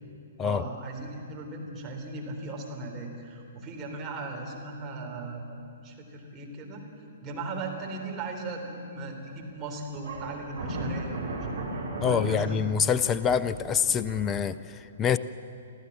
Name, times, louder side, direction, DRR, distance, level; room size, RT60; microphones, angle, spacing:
voice 1, 0.4-11.6 12.0-12.6, right 2 dB, 20° right, 0 dB, 3.6 m, -38 dB
sound 1, 9.2-9.5 10.0-14.4, right 1 dB, 65° right, 3.8 m, -36 dB
voice 2, 12.0-15.2, left 7 dB, 20° left, 15 dB, 0.5 m, -26 dB
27.0 x 14.5 x 7.4 m, 2.5 s
figure-of-eight pair, 115°, 0 cm